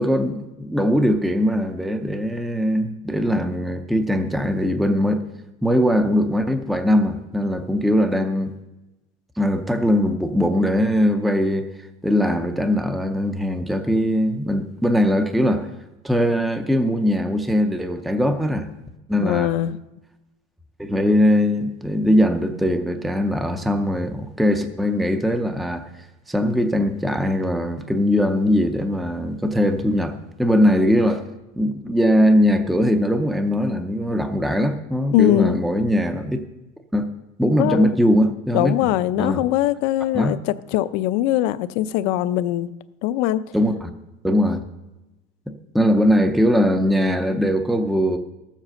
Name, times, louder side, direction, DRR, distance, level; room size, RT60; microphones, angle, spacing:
voice 1, 0.0-5.2 5.6-8.5 9.4-11.7 12.0-15.7 16.0-18.7 19.1-19.5 20.8-25.9 26.3-31.2 31.6-36.4 36.9-37.1 37.4-38.8 39.2-39.5 40.1-40.4 43.5-43.9 44.2-44.6 45.5-48.2, equal, ahead, 7 dB, 0.4 m, -20 dB
voice 2, 19.2-19.8 35.1-35.6 37.6-37.9 38.5-42.7 43.0-43.4, left 13 dB, 65° left, 14 dB, 0.6 m, -21 dB
14.0 x 7.4 x 6.4 m, 1.0 s
cardioid pair, 170°, 19 cm